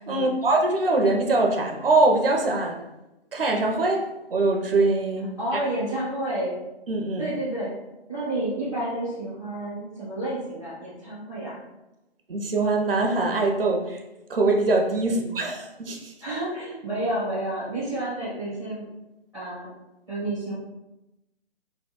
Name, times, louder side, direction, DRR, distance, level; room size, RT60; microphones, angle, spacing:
voice 1, 0.0-2.8 3.3-5.6 6.9-7.3 12.3-14.0 14.3-16.1, right 2 dB, 60° right, 1 dB, 0.6 m, -23 dB
voice 2, 5.4-6.6 7.2-7.7 8.1-11.6 15.1-15.3 16.2-18.8 19.3-19.7 20.1-20.5, right 1 dB, 5° left, -14 dB, 0.5 m, -30 dB
3.1 x 2.1 x 3.1 m, 0.94 s
figure-of-eight pair, 140°, 33 cm